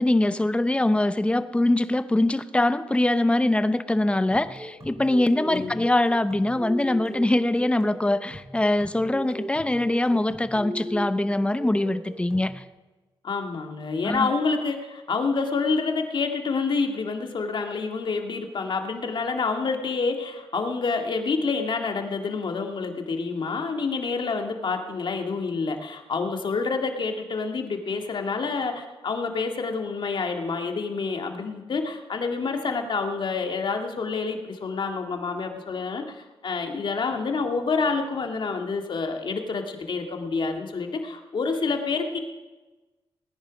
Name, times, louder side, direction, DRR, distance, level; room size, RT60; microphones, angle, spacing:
voice 1, 0.0-12.6 14.0-14.3, left 1 dB, 10° left, 13 dB, 0.7 m, -23 dB
sound 1, 4.1-12.6, right 1 dB, 30° right, 3.9 m, -39 dB
voice 2, 5.4-5.8 13.2-42.2, left 4 dB, 55° left, 4 dB, 2.0 m, -28 dB
18.5 x 10.5 x 5.2 m, 1.2 s
cardioid pair, 80°, 10 cm